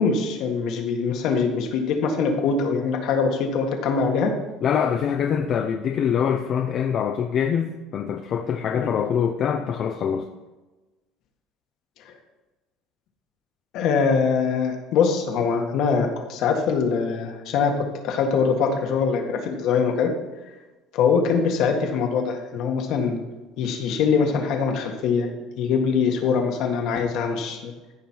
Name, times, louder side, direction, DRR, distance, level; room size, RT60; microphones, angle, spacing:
voice 1, 0.0-4.3 8.8-8.9 12.1-12.2 13.7-20.1 20.9-23.2 23.6-25.3 25.6-27.7, left 5 dB, 60° left, 3 dB, 1.7 m, -23 dB
voice 2, 4.6-10.3, left 8 dB, 45° left, 4 dB, 0.7 m, -24 dB
14.5 x 5.3 x 4.5 m, 1.2 s
cardioid pair, 130°, 0 cm